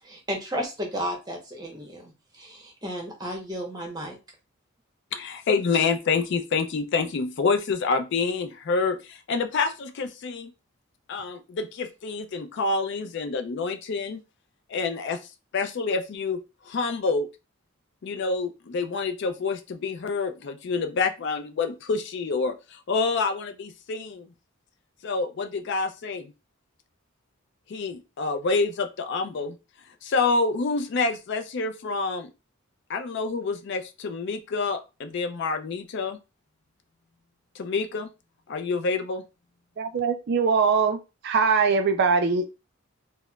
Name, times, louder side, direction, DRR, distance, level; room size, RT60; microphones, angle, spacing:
voice 1, 0.0-4.2, equal, 20° right, 0.9 m, -33 dB
voice 2, 5.1-10.5 11.1-14.2 14.7-15.2 15.5-17.3 18.0-24.3 25.0-26.3 27.7-29.5 30.0-32.3 32.9-36.2 37.5-38.1 38.5-39.2, left 4 dB, 55° left, 0.4 m, -27 dB
voice 3, 39.8-42.5, right 5 dB, 50° right, 0.3 m, -22 dB
4.2 x 2.0 x 2.3 m
head